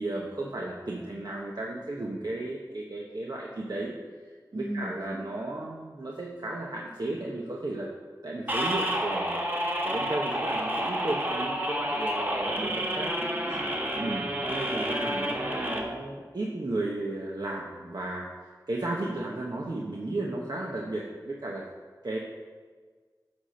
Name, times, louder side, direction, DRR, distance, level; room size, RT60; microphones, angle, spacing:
voice 1, 0.0-3.9 4.5-7.9 8.2-9.4 9.8-13.2 14.0-21.6 22.0-22.2, right 2 dB, 65° right, -2 dB, 1.0 m, -34 dB
voice 2, 4.5-5.2 13.2-13.6 13.9-14.2, right 1 dB, 85° right, -6 dB, 1.4 m, -38 dB
sound 1, 8.5-15.8, equal, 25° right, 1.5 m, -30 dB
10.0 x 4.3 x 6.4 m, 1.5 s
wide cardioid pair, 50°, 7 cm